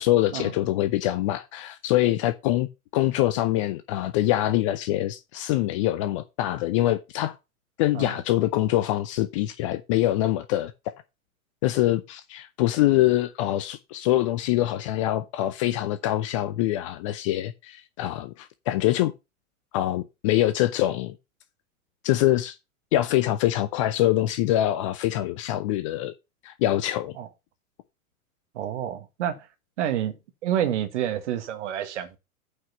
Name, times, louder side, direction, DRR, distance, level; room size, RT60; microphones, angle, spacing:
voice 1, 0.0-2.7 2.9-7.4 7.8-10.7 11.6-19.1 19.7-21.2 22.0-22.6 22.9-26.1 26.4-27.2, left 14 dB, 25° left, 0.4 m, -24 dB
voice 2, 28.5-29.5 29.8-30.1 30.4-32.2, right 10 dB, 55° right, 1.6 m, -28 dB
8.5 x 4.9 x 5.4 m
figure-of-eight pair, 95°, 43 cm